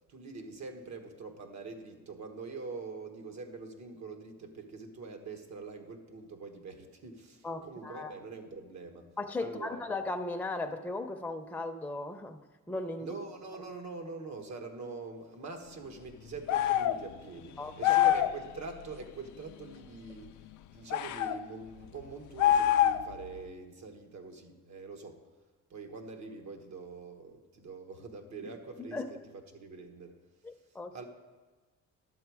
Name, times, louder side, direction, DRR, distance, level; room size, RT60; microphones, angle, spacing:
voice 1, 0.1-9.1 9.4-9.8 13.0-20.3 20.7-25.2 25.7-29.0 29.5-30.2 30.9-31.0, right 4 dB, 65° right, 5 dB, 1.4 m, -44 dB
voice 2, 7.4-8.1 9.2-12.4 12.7-13.2 17.6-18.1 28.9-29.1 30.4-30.9, left 2 dB, 5° left, 5 dB, 0.6 m, -37 dB
sound 1, 16.5-17.0 17.8-18.4 20.9-21.4 22.4-23.2, left 11 dB, 75° left, 0.5 m, -25 dB
11.0 x 7.1 x 4.8 m, 1.3 s
cardioid pair, 90°, 30 cm